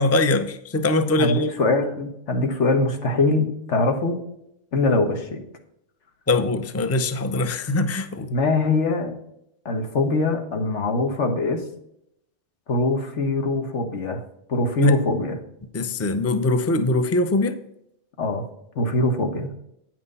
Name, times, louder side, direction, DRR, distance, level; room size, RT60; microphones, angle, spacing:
voice 1, 0.0-1.5 6.3-8.3 14.8-15.0 15.7-17.6, left 2 dB, 15° left, 10 dB, 0.5 m, -22 dB
voice 2, 1.2-4.2 4.7-5.4 8.3-9.2 9.7-11.7 12.7-14.2 14.5-15.4 18.2-18.5 18.8-19.5, left 2 dB, 85° left, 5 dB, 1.7 m, -23 dB
8.9 x 6.1 x 5.5 m, 0.77 s
omnidirectional pair, 1.2 m